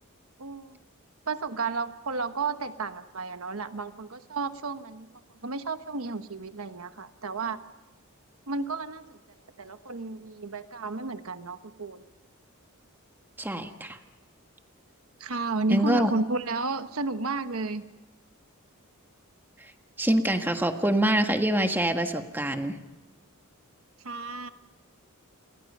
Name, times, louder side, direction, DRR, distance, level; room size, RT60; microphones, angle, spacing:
voice 1, 0.4-0.8 1.3-5.1 5.4-7.6 8.5-12.0 15.2-17.8 24.0-24.5, right 3 dB, 75° right, 9 dB, 1.2 m, -32 dB
voice 2, 13.4-14.0 15.7-16.1 20.0-22.7, right 1 dB, 10° right, 5 dB, 1.5 m, -25 dB
29.0 x 23.0 x 5.5 m, 1.1 s
head